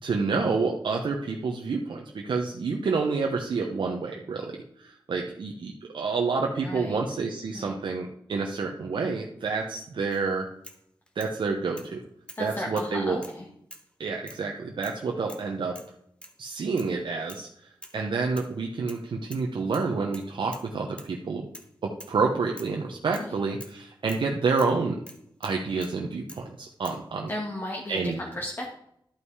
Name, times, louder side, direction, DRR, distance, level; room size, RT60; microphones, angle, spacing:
voice 1, 0.0-10.5 11.1-12.0 12.4-13.2 14.0-15.8 16.4-21.5 21.8-25.0 25.4-27.3 27.9-28.2, right 4 dB, 85° right, 1 dB, 1.0 m, -29 dB
voice 2, 6.6-7.0 7.5-7.8 12.4-13.5 23.1-23.3 27.3-28.7, left 1 dB, 30° left, -1 dB, 1.7 m, -35 dB
sound 1, 10.1-10.3 10.6-11.4 11.8-11.9 12.3-12.5 12.7-13.4 13.7-13.9 14.3-14.4 14.8-15.0 15.3-15.5 15.8-15.9 16.2-16.4 16.8-17.0 17.3-17.5 17.8-18.0 18.4-19.0 19.3-19.5 19.7-20.7 21.0-21.1 21.5-21.7 22.0-22.2 22.6-22.8 23.1-23.3 23.6-23.8 24.1-24.3 24.6-24.8 25.1-26.0 26.3-26.5 26.9-27.0, left 1 dB, 15° left, 1.5 m, -47 dB
12.0 x 5.5 x 4.8 m, 0.72 s
wide cardioid pair, 85°, 8 cm